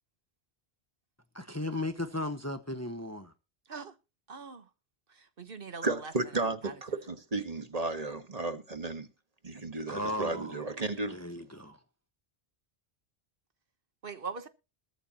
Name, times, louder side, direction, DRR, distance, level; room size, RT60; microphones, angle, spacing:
voice 1, 1.3-3.3 9.9-10.6 11.1-11.8, left 1 dB, 15° left, 1.0 m, -36 dB
voice 2, 4.3-4.6 5.4-6.7 14.0-14.5, right 5 dB, 60° right, 1.3 m, -41 dB
voice 3, 5.8-9.1 9.4-11.2, right 2 dB, 40° right, 1.5 m, -33 dB
21.5 x 8.9 x 2.9 m
omnidirectional pair, 1.1 m